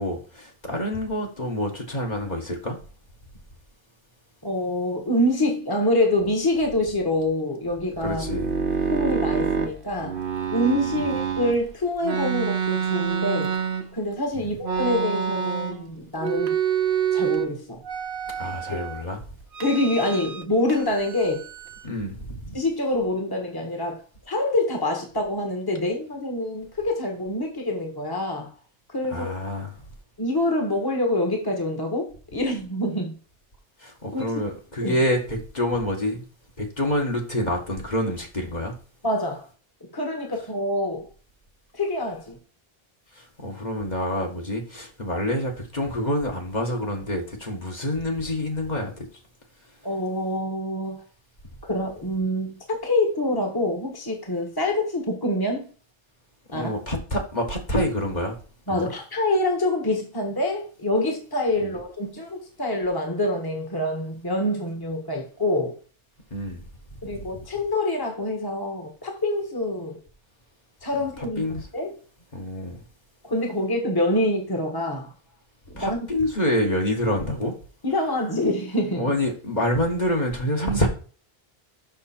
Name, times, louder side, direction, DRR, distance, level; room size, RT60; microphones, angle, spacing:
voice 1, 0.0-2.8 8.0-8.5 11.0-11.1 14.3-14.5 18.4-19.2 21.8-22.6 29.1-29.8 33.8-36.2 36.6-38.7 43.1-49.1 56.5-58.4 58.7-58.9 61.6-61.7 66.3-66.7 71.4-71.6 72.3-72.8 75.8-77.6 79.0-80.9, left 1 dB, 45° left, 1.8 m, -27 dB
voice 2, 4.4-8.2 8.9-10.2 10.5-13.5 13.9-16.5 17.1-17.8 19.6-21.5 22.5-28.5 28.9-29.3 30.2-33.2 34.1-34.2 34.8-35.0 39.0-39.4 39.8-41.1 41.7-42.4 49.8-51.0 51.6-55.7 56.5-56.7 58.7-65.8 67.0-70.0 70.8-71.4 71.7-71.9 73.2-75.1 75.7-76.1 77.8-79.1, left 1 dB, 20° left, 1.4 m, -26 dB
sound 1, 8.0-11.6 12.0-14.1 14.6-15.9 16.2-17.5 17.8-19.0 19.5-20.4 20.7-21.9, right 7 dB, 60° right, 1.1 m, -27 dB
6.5 x 6.2 x 4.4 m
omnidirectional pair, 1.0 m